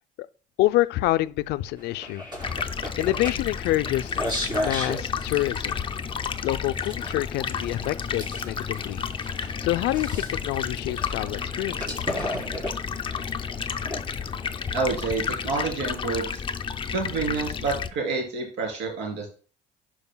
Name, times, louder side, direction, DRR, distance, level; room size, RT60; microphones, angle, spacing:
voice 1, 0.6-2.3 3.0-4.2 4.6-5.8 6.4-9.1 9.6-12.1, left 16 dB, 70° left, 0.4 m, -27 dB
sound 1, 1.8-15.3, left 1 dB, 25° right, 3.6 m, -36 dB
Stream, 2.4-17.9, left 6 dB, 30° left, 0.6 m, -31 dB
voice 2, 14.7-16.4 16.9-19.3, right 4 dB, 80° right, 3.0 m, -28 dB
11.0 x 4.7 x 2.2 m
supercardioid pair, 95°, 18 cm